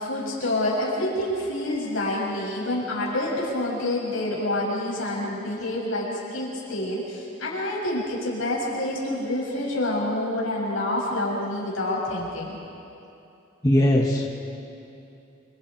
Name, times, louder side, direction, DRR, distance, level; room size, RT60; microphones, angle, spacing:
voice 1, 0.0-12.6, left 1 dB, 75° left, -4 dB, 7.3 m, -27 dB
voice 2, 13.6-14.3, left 1 dB, 15° left, -1 dB, 1.5 m, -19 dB
29.0 x 26.0 x 4.6 m, 2.7 s
head